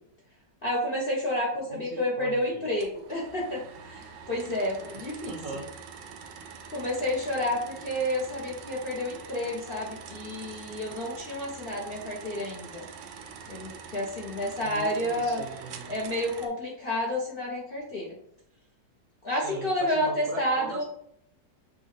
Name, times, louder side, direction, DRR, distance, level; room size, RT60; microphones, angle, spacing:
voice 1, 0.6-5.3 6.7-12.9 13.5-15.4 15.9-18.2 19.2-20.8, left 1 dB, 45° left, -4 dB, 0.7 m, -30 dB
voice 2, 1.7-2.8 4.9-5.7 14.6-16.1 19.3-20.8, right 3 dB, 60° right, 2 dB, 1.0 m, -40 dB
sound 1, 2.8-16.5, right 6 dB, 85° right, 1.3 m, -45 dB
6.3 x 2.3 x 3.1 m, 0.69 s
omnidirectional pair, 1.9 m